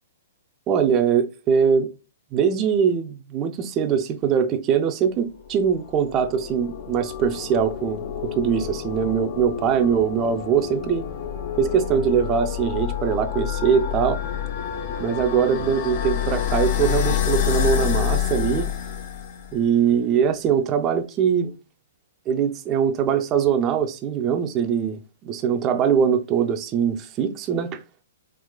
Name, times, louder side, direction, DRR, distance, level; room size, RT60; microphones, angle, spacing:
voice 1, 0.7-1.9 2.3-11.0 11.6-14.2 15.0-18.7 19.5-21.5 22.3-27.8, right 7 dB, 30° right, 0.4 m, -22 dB
sound 1, 5.5-19.6, left 9 dB, 45° left, 0.5 m, -28 dB
3.7 x 2.4 x 2.2 m
hypercardioid pair, 130°, 0 cm